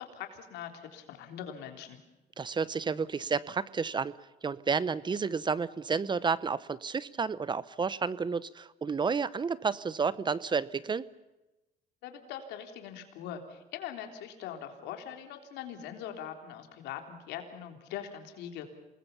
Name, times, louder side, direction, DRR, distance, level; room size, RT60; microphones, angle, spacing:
voice 1, 0.0-2.0 12.0-18.7, left 9 dB, 90° left, 5 dB, 3.6 m, -42 dB
voice 2, 2.4-4.1 4.4-11.0, right 5 dB, 25° right, 18 dB, 0.8 m, -31 dB
28.0 x 20.0 x 6.9 m, 1.0 s
cardioid pair, 110°, 17 cm